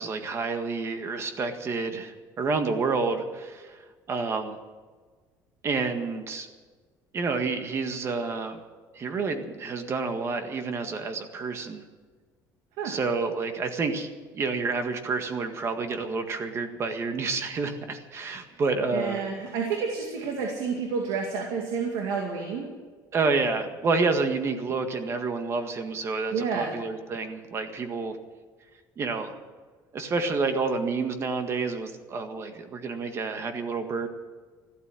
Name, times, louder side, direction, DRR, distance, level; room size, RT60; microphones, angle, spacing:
voice 1, 0.0-3.8 4.1-4.6 5.6-6.5 7.1-8.6 8.9-11.8 12.8-14.1 14.3-19.2 23.1-28.2 29.0-29.3 29.9-34.1, right 4 dB, 35° right, 7 dB, 1.7 m, -29 dB
voice 2, 18.9-22.7 26.3-26.7, right 5 dB, 80° right, 2 dB, 2.4 m, -30 dB
14.5 x 12.5 x 7.7 m, 1.4 s
cardioid pair, 140°, 8 cm